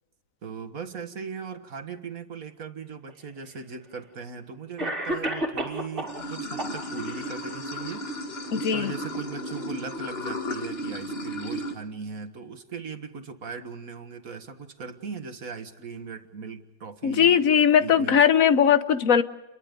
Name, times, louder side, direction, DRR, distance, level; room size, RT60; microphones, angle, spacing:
voice 1, 0.4-8.1 8.7-17.4 17.8-18.2, right 5 dB, 50° right, 8 dB, 2.0 m, -38 dB
Cough, 3.1-3.2 4.2-4.3 4.8-6.2 6.6-7.2, right 1 dB, 30° right, 3.6 m, -30 dB
Water / Sink (filling or washing), 6.1-11.7, equal, 35° left, 2.0 m, -34 dB
voice 2, 8.5-8.9 17.0-19.2, left 8 dB, 55° left, 12 dB, 1.2 m, -19 dB
30.0 x 23.0 x 5.3 m, 0.97 s
omnidirectional pair, 1.9 m